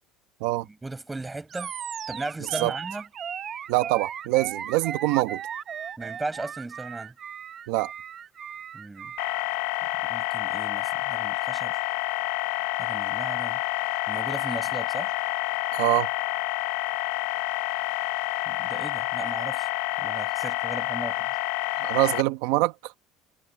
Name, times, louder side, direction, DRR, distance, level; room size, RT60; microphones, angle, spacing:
voice 1, 0.7-1.7 2.1-3.1 6.0-7.1 8.7-9.1 10.0-11.8 12.8-13.6 14.1-15.1 18.5-19.7 20.0-21.3, right 2 dB, 10° right, 5.5 m, -36 dB
Animal, 1.5-9.5, right 8 dB, 25° right, 0.8 m, -37 dB
voice 2, 3.7-5.4 7.7-7.9 15.7-16.1 21.8-22.9, right 20 dB, 75° right, 1.2 m, -24 dB
sound 1, 9.2-22.2, left 21 dB, 85° left, 0.6 m, -28 dB
cardioid pair, 170°, 0 cm